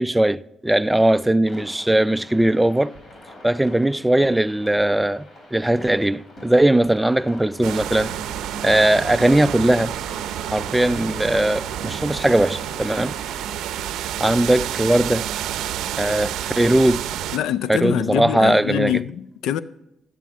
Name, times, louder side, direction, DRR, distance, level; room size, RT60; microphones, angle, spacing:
voice 1, 0.0-2.9 3.4-8.1 8.6-10.0 10.5-13.2 14.2-15.3 16.0-17.1 17.7-19.0, right 1 dB, 10° right, 0.3 m, -19 dB
sound 1, 1.4-14.0, left 1 dB, 50° left, 4.4 m, -44 dB
sound 2, 7.6-17.4, right 11 dB, 90° right, 0.5 m, -29 dB
voice 2, 17.3-19.6, left 10 dB, 85° left, 0.4 m, -24 dB
11.5 x 9.2 x 6.0 m
cardioid pair, 90°, 0 cm